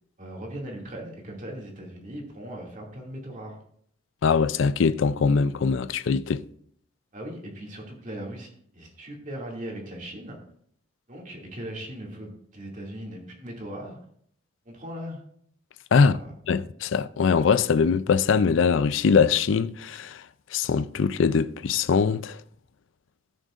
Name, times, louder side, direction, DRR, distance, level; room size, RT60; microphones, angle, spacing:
voice 1, 0.2-3.6 7.1-10.4 11.1-14.0 14.7-15.2 16.0-16.3, right 1 dB, 40° right, 2.4 m, -39 dB
voice 2, 4.2-6.4 15.9-16.1 16.5-20.2 20.5-22.4, left 5 dB, 75° left, 0.4 m, -22 dB
17.0 x 6.3 x 2.5 m
head